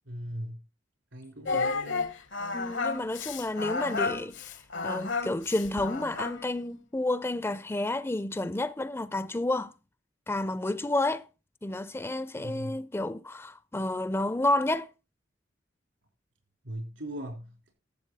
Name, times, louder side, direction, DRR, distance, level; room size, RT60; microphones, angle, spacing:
voice 1, 0.1-0.6 1.1-2.1 12.3-12.7 16.6-17.7, equal, 85° right, 4.4 m, -39 dB
Singing, 1.5-6.5, left 4 dB, 70° left, 1.1 m, -32 dB
voice 2, 2.5-4.5 4.8-9.7 10.3-11.3 11.6-14.9, left 2 dB, 15° left, 0.5 m, -30 dB
12.0 x 7.8 x 4.1 m
head